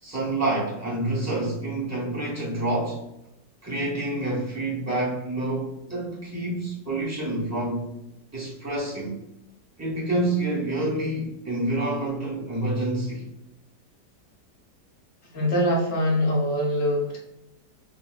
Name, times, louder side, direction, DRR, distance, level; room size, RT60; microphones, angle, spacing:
voice 1, 0.0-3.0 3.6-7.9 8.3-9.2 9.8-13.3, right 2 dB, 15° right, -7 dB, 0.8 m, -28 dB
voice 2, 15.3-17.2, equal, 55° left, -1 dB, 1.0 m, -23 dB
3.9 x 2.7 x 2.3 m, 0.85 s
omnidirectional pair, 1.9 m